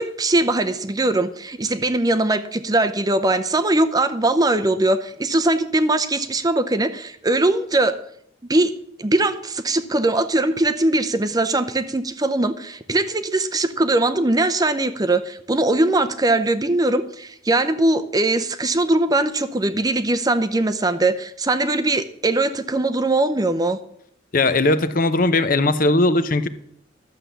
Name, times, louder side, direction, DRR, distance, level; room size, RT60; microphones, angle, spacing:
voice 1, 0.0-8.0 8.5-8.7 9.0-23.8, right 2 dB, 20° right, 11 dB, 0.6 m, -21 dB
voice 2, 24.3-26.5, left 2 dB, 45° left, 12 dB, 0.7 m, -18 dB
12.0 x 7.4 x 6.9 m, 0.71 s
head